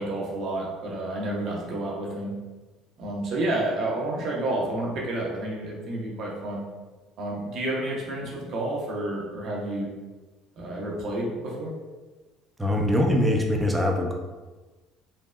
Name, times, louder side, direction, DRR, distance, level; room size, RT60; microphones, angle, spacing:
voice 1, 0.0-2.3 3.0-6.6 7.2-9.9 10.6-11.7, right 1 dB, 60° right, -3 dB, 0.7 m, -30 dB
voice 2, 12.6-14.1, left 1 dB, 10° right, 1 dB, 0.5 m, -23 dB
3.3 x 2.0 x 2.3 m, 1.2 s
hypercardioid pair, 65°, 0 cm